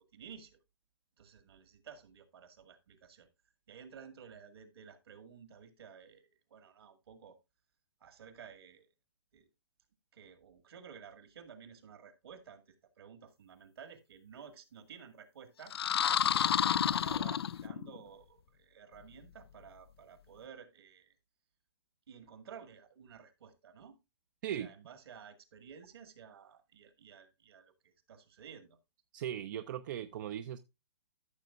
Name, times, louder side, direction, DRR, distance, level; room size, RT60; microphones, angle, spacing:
voice 1, 0.1-0.6 1.2-3.3 3.7-7.4 8.0-8.9 9.3-9.5 10.1-21.1 22.1-24.0 24.6-28.8, right 7 dB, 65° right, 1.9 m, -53 dB
sound 1, 15.7-18.0, left 9 dB, 65° left, 0.4 m, -30 dB
voice 2, 29.1-30.6, right 10 dB, 45° right, 0.5 m, -38 dB
14.0 x 6.8 x 2.4 m
hypercardioid pair, 130°, 14 cm